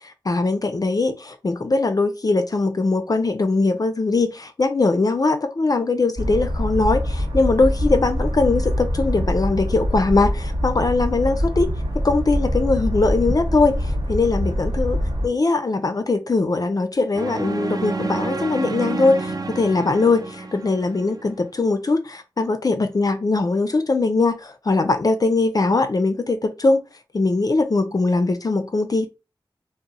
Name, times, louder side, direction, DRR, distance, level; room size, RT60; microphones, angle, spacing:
voice 1, 0.3-11.7 12.0-15.0 15.2-26.8 27.1-29.1, left 3 dB, 45° left, 0.3 m, -21 dB
sound 1, 6.2-15.3, equal, 75° right, 1.1 m, -24 dB
sound 2, 17.1-21.3, right 3 dB, 45° right, 0.4 m, -29 dB
2.6 x 2.0 x 3.8 m
wide cardioid pair, 80°, 9 cm